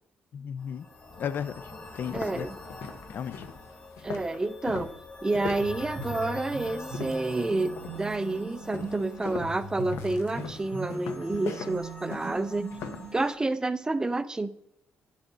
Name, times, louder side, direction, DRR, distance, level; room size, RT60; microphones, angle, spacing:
voice 1, 0.3-0.9 1.2-2.5 3.1-3.4 11.3-11.4, left 8 dB, 55° left, 15 dB, 0.4 m, -35 dB
sound 1, 0.6-13.4, left 2 dB, 35° left, 2.1 m, -45 dB
sound 2, 0.7-0.8 1.3-1.5 1.9-7.4 7.8-8.2 8.7-13.1, left 6 dB, 85° left, 0.8 m, -40 dB
voice 2, 2.1-2.6 4.0-4.9 5.2-12.7 13.1-14.5, right 2 dB, 20° right, 13 dB, 0.4 m, -29 dB
sound 3, 5.6-13.2, right 4 dB, 55° right, 0.8 m, -40 dB
8.8 x 7.2 x 3.9 m, 0.77 s
cardioid pair, 100°, 4 cm